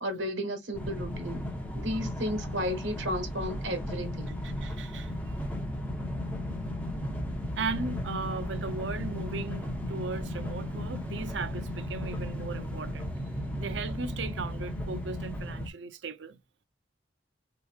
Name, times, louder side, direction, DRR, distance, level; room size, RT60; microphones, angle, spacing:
voice 1, 0.0-1.5 1.7-4.3, equal, 90° right, 1.3 m, -33 dB
sound 1, 0.7-15.7, left 1 dB, 10° left, 0.7 m, -35 dB
voice 2, 4.4-5.1 7.6-13.1 13.6-16.4, right 4 dB, 70° right, 0.6 m, -37 dB
3.7 x 2.8 x 2.4 m
head